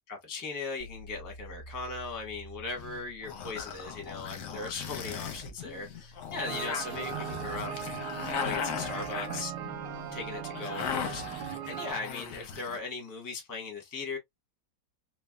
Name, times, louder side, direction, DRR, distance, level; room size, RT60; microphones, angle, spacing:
voice 1, 0.1-7.7 8.4-9.5 10.1-14.2, left 3 dB, 15° left, 0.7 m, -38 dB
sound 1, 0.8-10.5, right 2 dB, 35° right, 0.3 m, -50 dB
sound 2, 2.8-12.8, left 7 dB, 60° left, 0.9 m, -38 dB
sound 3, 6.5-11.9, right 10 dB, 70° right, 1.2 m, -39 dB
3.3 x 2.3 x 2.2 m
omnidirectional pair, 2.0 m